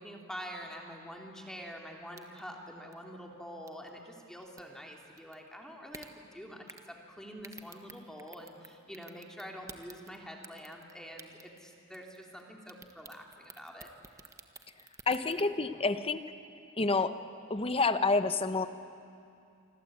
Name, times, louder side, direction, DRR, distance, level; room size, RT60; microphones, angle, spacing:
voice 1, 0.0-13.9, equal, 5° left, 1 dB, 2.7 m, -46 dB
sound 1, 2.2-2.5 2.9-3.0 3.7-3.9 4.4-4.6 5.2-5.4 5.9-6.1 6.7-6.9 7.4-8.7 8.9-10.2 10.4-10.9 11.2-11.7 11.9-12.4 12.7-15.5, right 4 dB, 15° right, 1.3 m, -49 dB
voice 2, 15.1-16.2 16.8-17.2 17.5-18.7, left 3 dB, 25° left, 10 dB, 1.0 m, -28 dB
27.0 x 25.5 x 8.5 m, 2.6 s
head